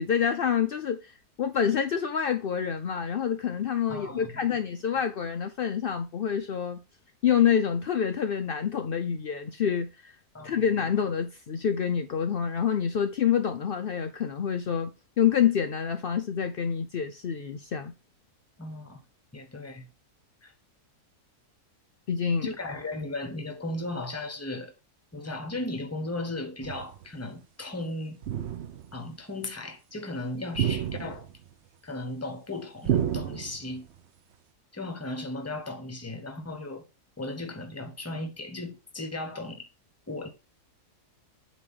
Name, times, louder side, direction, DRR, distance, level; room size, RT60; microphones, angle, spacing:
voice 1, 0.0-6.8 7.2-10.2 10.4-17.9 22.1-22.5, left 8 dB, 75° left, 0.5 m, -27 dB
voice 2, 3.9-4.3 10.3-10.7 18.6-19.0 19.3-19.9 20.4-20.5 22.4-24.7 25.1-28.2 28.9-31.3 31.8-33.9 34.7-36.9 37.2-39.7 40.1-40.3, left 2 dB, 10° left, 0.8 m, -36 dB
sound 1, 26.6-27.0 28.2-29.0 30.5-31.5 32.9-33.8, right 10 dB, 55° right, 0.8 m, -30 dB
8.1 x 3.3 x 5.5 m
omnidirectional pair, 1.7 m